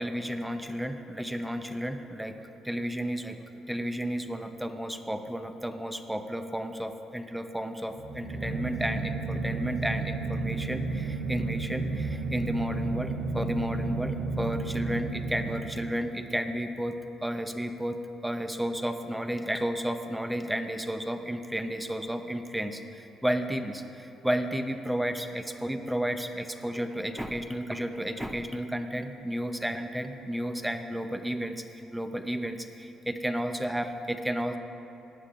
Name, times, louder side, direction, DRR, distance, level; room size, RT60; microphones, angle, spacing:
voice 1, 0.0-2.4 2.6-3.4 3.7-34.6, equal, 5° right, 7 dB, 0.7 m, -32 dB
sound 1, 7.9-16.2, right 3 dB, 65° right, 1.4 m, -32 dB
19.5 x 9.7 x 2.5 m, 2.9 s
cardioid pair, 110°, 0 cm